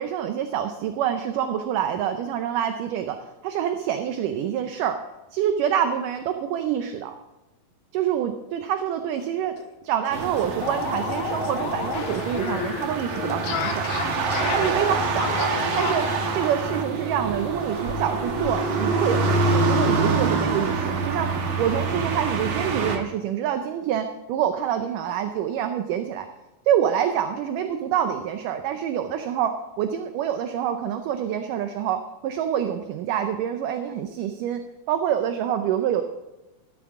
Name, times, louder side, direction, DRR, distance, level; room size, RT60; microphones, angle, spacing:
voice 1, 0.0-3.2 3.4-5.0 5.3-7.2 7.9-9.6 9.8-13.9 14.5-16.1 16.3-21.3 21.6-26.3 26.7-34.6 34.9-36.0, right 9 dB, 75° right, 7 dB, 2.1 m, -26 dB
sound 1, 9.2-9.3 9.6-9.7 10.0-16.1, left 7 dB, 80° left, 3.0 m, -32 dB
sound 2, 10.1-23.0, right 3 dB, 55° right, 2.1 m, -26 dB
13.0 x 13.0 x 3.7 m, 1.0 s
omnidirectional pair, 4.4 m